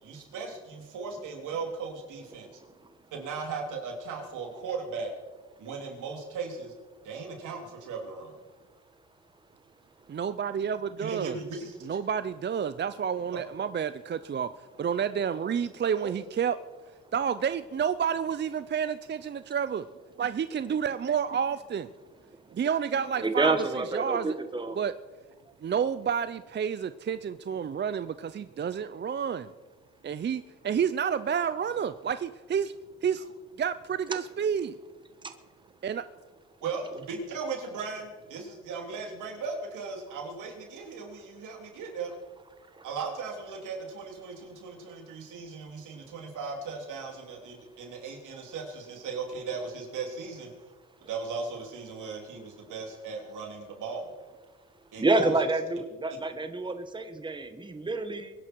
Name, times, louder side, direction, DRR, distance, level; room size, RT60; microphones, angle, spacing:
voice 1, 0.0-2.5 3.1-5.1 5.6-6.7 7.0-8.3 11.0-11.8 16.0-16.1 36.6-42.1 42.8-50.5 51.0-54.1 54.9-55.4, right 4 dB, 85° right, 1 dB, 3.6 m, -37 dB
voice 2, 10.1-11.4 11.8-14.5 14.8-16.6 17.1-19.9 20.2-21.9 22.5-24.4 24.8-24.9 25.6-29.5 30.0-32.7 33.0-33.3 33.6-34.8 35.8-36.0, right 7 dB, 35° right, 13 dB, 0.6 m, -30 dB
voice 3, 23.2-24.8 35.2-35.4 42.7-42.8 55.0-58.3, right 2 dB, 15° right, 8 dB, 1.3 m, -28 dB
23.0 x 11.0 x 4.7 m, 1.3 s
cardioid pair, 90°, 30 cm